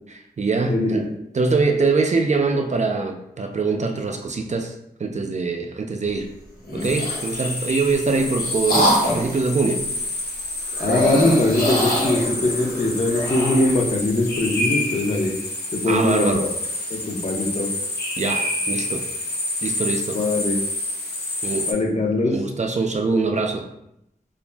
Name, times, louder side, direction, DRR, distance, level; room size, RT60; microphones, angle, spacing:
voice 1, 0.1-1.1 1.3-4.7 5.0-6.3 6.7-9.8 15.9-16.5 18.2-19.1 19.6-20.2 21.4-21.7 22.3-23.6, right 4 dB, 45° right, 3 dB, 0.4 m, -23 dB
voice 2, 0.7-1.1 10.8-15.4 15.7-16.5 16.9-17.7 20.1-20.6 21.7-22.4, left 2 dB, 45° left, -1 dB, 0.7 m, -21 dB
sound 1, 6.6-7.3 7.9-9.4 10.7-13.8, equal, 60° left, 1.0 m, -24 dB
sound 2, 6.8-21.7, left 2 dB, 80° left, 0.6 m, -28 dB
2.5 x 2.0 x 3.3 m, 0.80 s
cardioid pair, 45°, 16 cm